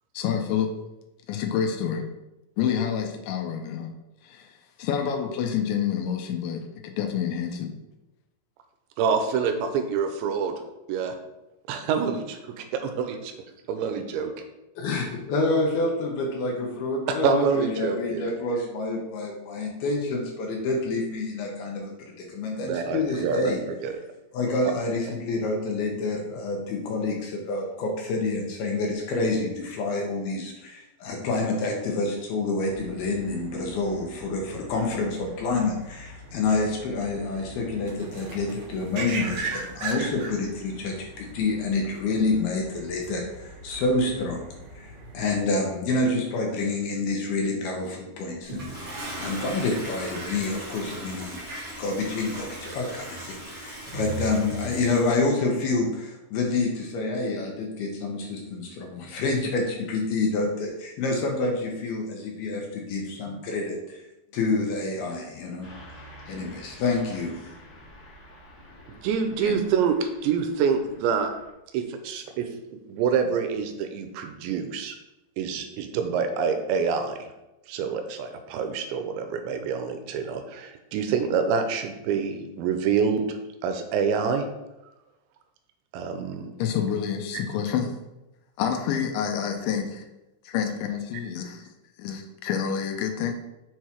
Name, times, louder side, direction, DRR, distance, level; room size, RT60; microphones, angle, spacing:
voice 1, 0.1-0.7 1.3-2.0 2.6-3.9 4.2-7.7 63.3-63.4 69.4-69.6 86.6-87.9 88.6-90.1 90.4-91.6 92.0-93.3, left 8 dB, 90° left, 4 dB, 3.1 m, -28 dB
voice 2, 9.0-10.5 10.9-11.2 11.7-13.3 13.7-14.3 17.1-18.2 22.6-24.0 68.9-71.3 71.7-75.0 75.4-77.3 77.7-83.4 83.6-84.5 85.9-86.5 87.3-87.4, right 6 dB, 85° right, 6 dB, 2.9 m, -27 dB
voice 3, 14.8-23.6 24.3-44.4 44.8-51.4 51.8-64.1 64.3-65.7 66.3-67.4, left 3 dB, 70° left, 0 dB, 2.5 m, -28 dB
sound 1, 32.6-45.4, right 3 dB, 65° right, 2.0 m, -39 dB
Toilet flush, 48.4-55.3, right 1 dB, 35° right, 1.9 m, -37 dB
Car passing by / Truck, 65.6-71.5, equal, 50° left, 1.5 m, -48 dB
7.2 x 4.8 x 4.4 m, 0.97 s
omnidirectional pair, 5.2 m